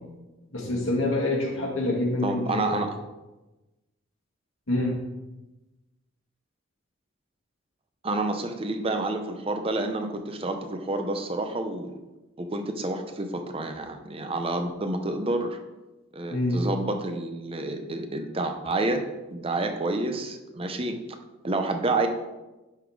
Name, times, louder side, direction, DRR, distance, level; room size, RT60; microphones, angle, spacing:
voice 1, 0.5-2.8 4.7-5.0 16.3-16.6, left 2 dB, 85° left, -2 dB, 2.3 m, -26 dB
voice 2, 2.2-3.0 8.0-12.0 12.4-15.6 16.1-19.0 19.3-21.2 21.4-22.1, right 2 dB, 30° right, 6 dB, 0.7 m, -29 dB
11.0 x 4.0 x 4.7 m, 1.1 s
head